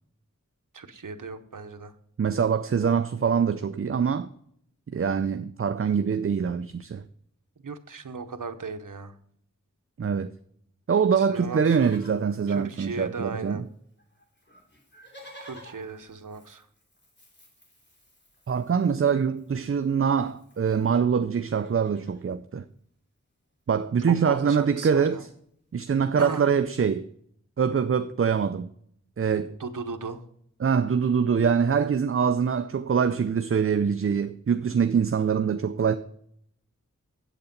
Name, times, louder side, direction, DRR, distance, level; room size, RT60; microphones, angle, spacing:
voice 1, 0.7-1.9 7.6-9.1 11.1-11.9 12.5-13.6 15.4-16.7 24.1-25.2 26.2-26.5 29.6-30.2, right 4 dB, 85° right, 0.9 m, -36 dB
voice 2, 2.2-4.3 4.9-7.0 10.0-10.3 10.9-13.6 18.5-22.7 23.7-25.3 25.7-27.1 27.6-28.7 29.2-29.5 30.6-36.0, right 6 dB, 45° right, 0.5 m, -24 dB
Livestock farm animals working animals, 11.4-13.4 13.7-13.8 14.0-20.9 21.4-22.3 23.5-23.6 23.8-24.0 24.4-25.4 26.0-26.1, equal, 35° left, 3.2 m, -53 dB
8.2 x 8.1 x 5.2 m
wide cardioid pair, 50°, 31 cm